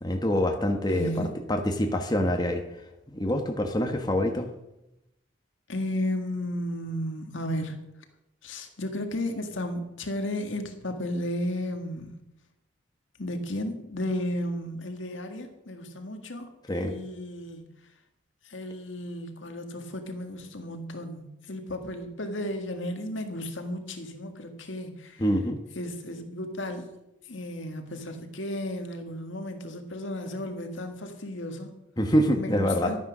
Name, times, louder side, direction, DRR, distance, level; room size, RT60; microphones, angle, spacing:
voice 1, 0.0-2.6 3.1-4.5 16.7-16.9 25.2-25.6 32.0-32.9, equal, 20° left, 4 dB, 1.2 m, -25 dB
voice 2, 0.9-1.3 5.7-7.8 8.4-12.1 13.2-17.7 18.5-25.2 25.8-27.0 27.3-31.7 32.3-33.0, left 1 dB, 70° left, 6 dB, 1.9 m, -34 dB
12.5 x 9.8 x 6.1 m, 0.87 s
head